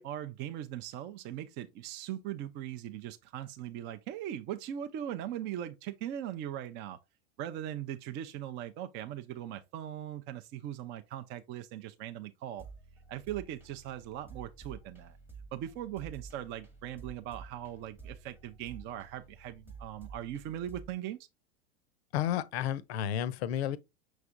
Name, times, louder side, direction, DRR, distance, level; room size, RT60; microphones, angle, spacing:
voice 1, 0.0-7.0 7.4-12.7 13.1-15.2 15.5-21.2, right 11 dB, 30° right, 0.4 m, -40 dB
sound 1, 12.6-20.9, right 4 dB, 5° right, 0.9 m, -51 dB
voice 2, 22.1-23.8, left 10 dB, 55° left, 0.6 m, -31 dB
6.1 x 3.2 x 2.5 m
hypercardioid pair, 95°, 37 cm